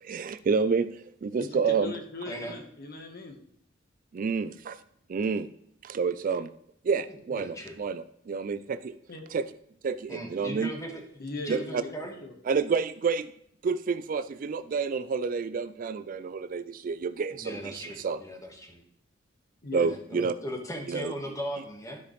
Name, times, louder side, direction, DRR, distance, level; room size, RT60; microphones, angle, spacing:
voice 1, 0.0-0.9 1.2-1.9 4.1-4.8 5.1-5.5 5.8-6.5 6.8-8.9 9.3-9.4 9.8-10.7 11.5-11.8 12.5-13.3 13.6-18.2 19.7-20.3 20.9-21.1, right 5 dB, 45° right, 12 dB, 0.4 m, -29 dB
voice 2, 1.4-3.4 9.1-9.2 11.2-11.9 12.2-12.3 19.6-19.9, left 3 dB, 55° left, 4 dB, 1.3 m, -39 dB
voice 3, 7.3-7.8 10.1-11.0 11.3-12.1 17.3-18.8 19.8-22.0, equal, 15° left, 2 dB, 1.4 m, -38 dB
13.0 x 5.0 x 3.2 m, 0.68 s
head